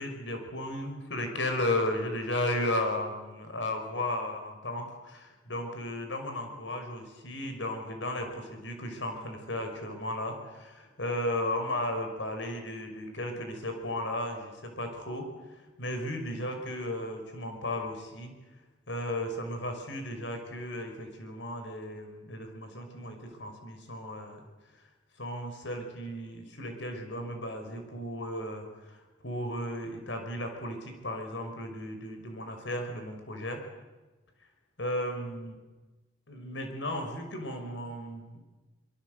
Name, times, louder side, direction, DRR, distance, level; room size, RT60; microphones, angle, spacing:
voice 1, 0.0-15.3 15.8-18.3 18.9-24.4 25.2-29.0 29.2-33.6 34.8-35.6 36.3-38.4, left 1 dB, 75° left, 5 dB, 5.5 m, -35 dB
24.5 x 23.0 x 8.0 m, 1.2 s
head